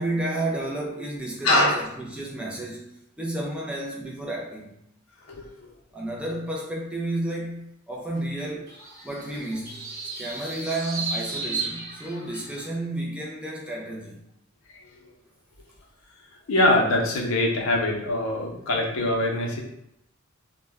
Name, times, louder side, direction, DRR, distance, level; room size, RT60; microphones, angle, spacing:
voice 1, 0.0-4.8 5.9-8.7 9.0-9.9 10.2-14.2, right 1 dB, 5° right, -2 dB, 0.4 m, -31 dB
voice 2, 1.4-1.8 5.3-5.7 16.5-19.6, left 1 dB, 70° left, 0 dB, 0.6 m, -23 dB
sound 1, 8.7-12.7, right 4 dB, 50° right, 0.7 m, -34 dB
2.1 x 2.1 x 3.3 m, 0.80 s
head